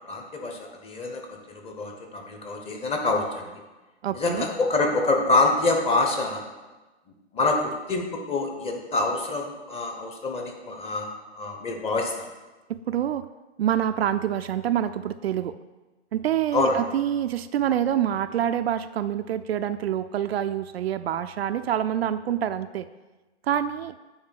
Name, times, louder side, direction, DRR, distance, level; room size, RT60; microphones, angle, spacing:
voice 1, 0.0-3.5 4.1-6.4 7.3-12.3 16.5-16.8, left 2 dB, 15° left, 3 dB, 1.0 m, -26 dB
voice 2, 4.0-4.5 12.7-13.3 13.6-15.5 16.1-22.9 23.5-23.9, right 10 dB, 65° right, 10 dB, 0.5 m, -26 dB
9.6 x 3.3 x 6.4 m, 1.2 s
hypercardioid pair, 120°, 34 cm